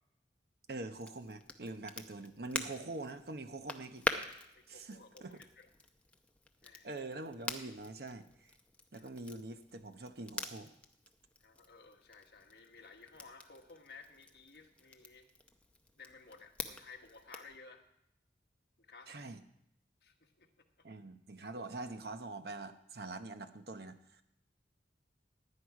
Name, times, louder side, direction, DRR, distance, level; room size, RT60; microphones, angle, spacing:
voice 1, 0.7-4.0 4.7-5.4 6.8-8.5 8.9-10.7 19.1-19.4 20.8-24.2, right 2 dB, 60° right, 8 dB, 0.9 m, -44 dB
Crackle, 0.9-17.6, left 2 dB, 5° left, 0.6 m, -45 dB
voice 2, 4.5-5.7 6.6-6.9 9.0-9.1 11.4-15.3 16.0-17.9 18.8-19.2 20.0-20.9, left 4 dB, 60° left, 4 dB, 1.3 m, -56 dB
16.0 x 9.9 x 4.8 m, 0.79 s
head